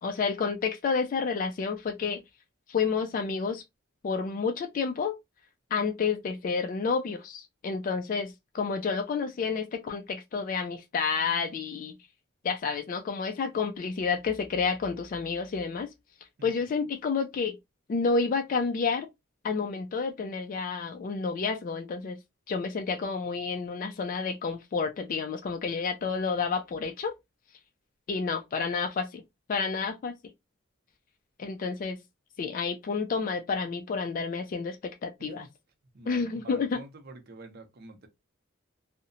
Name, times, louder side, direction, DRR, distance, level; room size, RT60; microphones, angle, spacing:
voice 1, 0.0-2.2 2.7-3.6 4.0-5.1 5.7-12.0 12.4-15.9 16.4-17.6 17.9-19.1 19.4-22.2 22.5-27.1 28.1-29.2 29.5-30.1 31.4-32.0 32.4-35.4 36.1-36.8, left 5 dB, 40° left, 0.3 m, -30 dB
voice 2, 35.2-35.5 35.9-38.1, right 3 dB, 50° right, 0.6 m, -47 dB
2.7 x 2.1 x 2.5 m
head